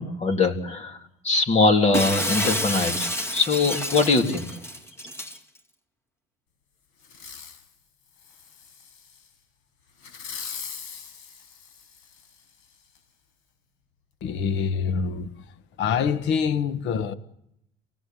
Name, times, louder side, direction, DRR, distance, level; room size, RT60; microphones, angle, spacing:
voice 1, 0.0-3.0 3.3-4.6, left 3 dB, 35° left, 3.7 m, -22 dB
Shatter, 1.9-5.4, equal, 10° left, 2.4 m, -29 dB
Fireworks, 7.0-7.7 8.2-9.2 10.0-12.4 13.0-13.1, left 6 dB, 80° left, 6.2 m, -41 dB
voice 2, 14.2-15.3 15.8-17.1, left 6 dB, 60° left, 1.6 m, -25 dB
28.0 x 18.0 x 9.4 m
cardioid pair, 140°, 21 cm